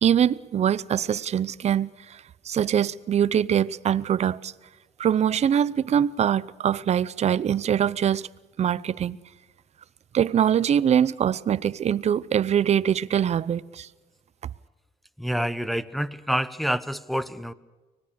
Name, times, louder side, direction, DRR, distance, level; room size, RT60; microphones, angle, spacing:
voice 1, 0.0-4.5 5.0-8.3 8.6-9.2 10.1-13.9, right 9 dB, 40° right, 0.7 m, -23 dB
voice 2, 15.2-17.5, equal, ahead, 0.8 m, -27 dB
25.0 x 19.5 x 6.9 m
cardioid pair, 110°, 17 cm